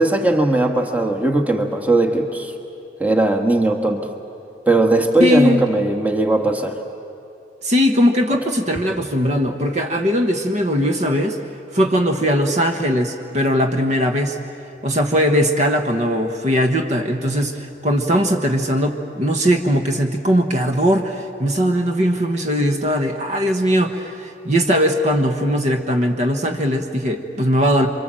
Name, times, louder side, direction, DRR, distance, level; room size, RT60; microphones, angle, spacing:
voice 1, 0.0-2.5 3.0-4.1 4.7-6.8, right 2 dB, 10° right, 4 dB, 1.4 m, -18 dB
voice 2, 5.2-5.6 7.6-11.4 11.7-14.4 14.8-27.9, equal, 40° right, 4 dB, 1.1 m, -19 dB
27.0 x 24.5 x 7.6 m, 2.7 s
head